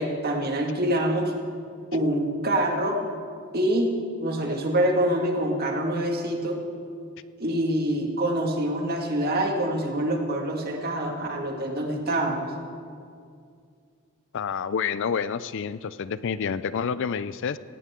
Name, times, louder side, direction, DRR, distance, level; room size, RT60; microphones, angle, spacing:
voice 1, 0.0-1.3 1.9-3.0 3.5-3.9 4.2-6.6 7.4-12.4, right 1 dB, 45° right, 1 dB, 2.0 m, -25 dB
voice 2, 14.3-17.6, left 6 dB, 60° left, 15 dB, 0.4 m, -28 dB
17.5 x 17.0 x 3.7 m, 2.3 s
head